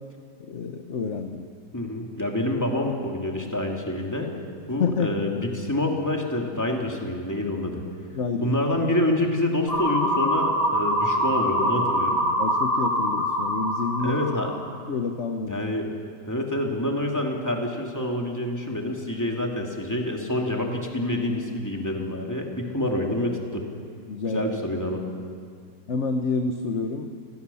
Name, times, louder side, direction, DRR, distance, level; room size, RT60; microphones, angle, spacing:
voice 1, 0.4-1.5 4.8-5.4 8.1-8.5 12.4-14.2 14.9-15.6 24.1-24.5 25.9-27.2, left 4 dB, 45° left, 5 dB, 1.2 m, -28 dB
voice 2, 1.7-4.3 4.7-7.8 8.4-12.2 14.0-14.5 15.5-15.9 16.3-23.6 24.3-25.0, left 1 dB, 10° left, 0 dB, 2.6 m, -27 dB
sound 1, 9.7-14.7, equal, 25° right, 6.1 m, -24 dB
29.5 x 16.5 x 7.1 m, 2.1 s
omnidirectional pair, 2.0 m